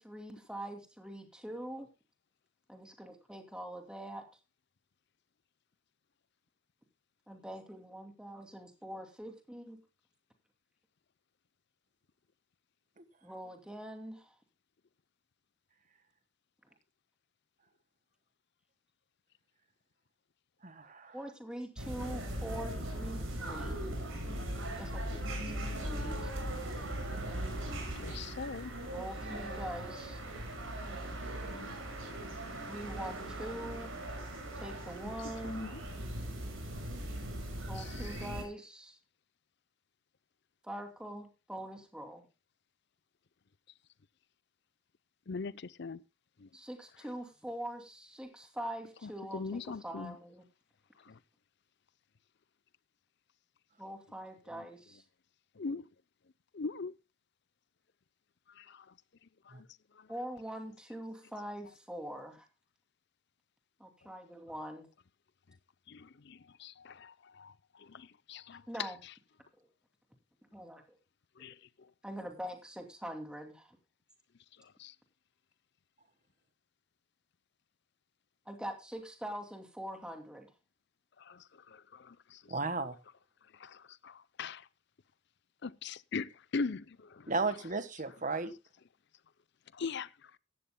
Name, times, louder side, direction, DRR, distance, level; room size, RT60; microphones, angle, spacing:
voice 1, 0.0-1.9 2.7-4.3 7.3-9.8 13.2-14.3 21.1-23.8 24.8-26.3 28.9-30.2 32.7-33.9 34.6-35.7 37.7-39.0 40.6-42.2 46.5-50.4 53.8-55.0 60.1-62.5 63.8-64.9 68.7-69.0 70.5-71.0 71.4-71.5 72.0-73.8 78.5-80.5, right 1 dB, 5° right, 2.5 m, -43 dB
voice 2, 20.6-21.1 59.5-59.6 82.5-83.0 87.3-88.5, right 3 dB, 40° right, 1.5 m, -34 dB
sound 1, 21.8-38.4, right 1 dB, 65° right, 6.7 m, -39 dB
voice 3, 28.0-28.7 35.4-35.8 37.8-37.9 45.3-46.0 46.4-46.5 49.0-50.2 51.1-51.2 55.6-55.9 56.5-57.0 58.6-58.8 59.6-59.7 60.0-60.1 65.9-68.9 71.4-71.5 74.8-74.9 81.2-82.4 83.6-84.7 85.6-87.3 89.7-90.1, left 4 dB, 55° left, 0.6 m, -41 dB
17.0 x 13.0 x 2.2 m
head